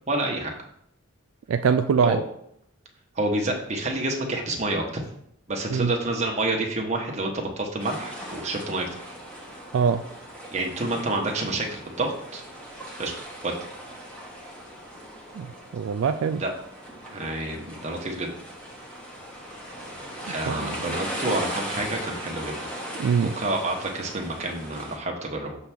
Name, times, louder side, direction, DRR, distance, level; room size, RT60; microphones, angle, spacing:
voice 1, 0.1-0.5 2.0-2.2 3.2-5.0 5.5-9.1 10.5-12.4 13.0-13.1 13.4-13.5 16.4-16.5 17.1-18.3 20.2-22.7 23.2-25.6, right 2 dB, 30° right, 1 dB, 1.1 m, -28 dB
voice 2, 1.5-2.2 5.7-5.9 9.7-10.0 15.4-16.4 20.5-20.7 23.0-23.3, right 6 dB, 70° right, 8 dB, 0.3 m, -23 dB
sound 1, 7.8-25.0, equal, 5° left, 1.2 m, -38 dB
6.8 x 3.4 x 6.0 m, 0.71 s
head